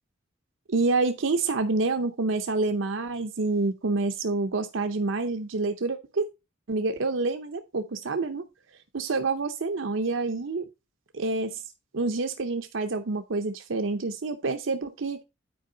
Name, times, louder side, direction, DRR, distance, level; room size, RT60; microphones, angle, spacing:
voice 1, 0.7-6.3 6.7-8.4 8.9-10.6 11.1-11.6 11.9-15.2, right 3 dB, 70° right, 0.7 m, -27 dB
9.4 x 4.6 x 3.9 m
head